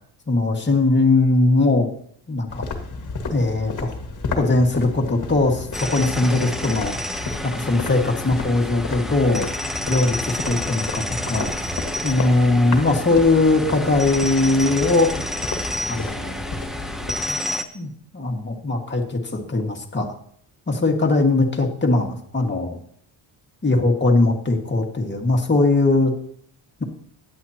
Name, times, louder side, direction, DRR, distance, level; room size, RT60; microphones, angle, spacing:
voice 1, 0.3-1.9 2.3-2.6 3.2-3.9 4.4-7.0 7.4-9.5 9.9-11.6 12.0-15.2 15.9-16.4 17.3-17.4 17.7-20.1 20.7-22.8 23.6-26.1, left 2 dB, 25° left, 1 dB, 1.9 m, -20 dB
sound 1, 2.5-17.3, left 3 dB, 40° left, 1.9 m, -32 dB
sound 2, 5.7-17.6, left 1 dB, ahead, 0.8 m, -30 dB
16.0 x 10.5 x 2.9 m, 0.65 s
cardioid pair, 125°, 45 cm